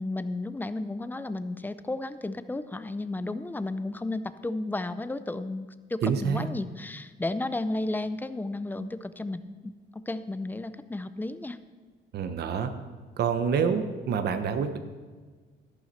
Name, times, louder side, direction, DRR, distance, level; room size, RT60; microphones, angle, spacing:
voice 1, 0.0-11.6, left 2 dB, 10° left, 13 dB, 0.5 m, -33 dB
voice 2, 6.0-6.5 12.1-12.7 13.2-14.8, right 6 dB, 60° right, 9 dB, 1.1 m, -27 dB
12.5 x 11.5 x 4.3 m, 1.4 s
cardioid pair, 135°, 19 cm